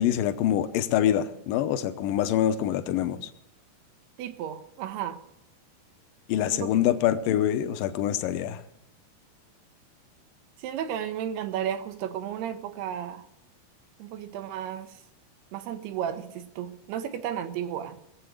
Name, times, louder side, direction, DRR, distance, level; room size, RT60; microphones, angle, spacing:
voice 1, 0.0-3.2 6.3-8.6, left 11 dB, 75° left, 2.2 m, -25 dB
voice 2, 4.2-5.2 6.5-6.9 10.6-13.3 14.0-15.0 15.5-18.0, right 10 dB, 90° right, 3.0 m, -33 dB
21.0 x 7.9 x 6.4 m
omnidirectional pair, 4.6 m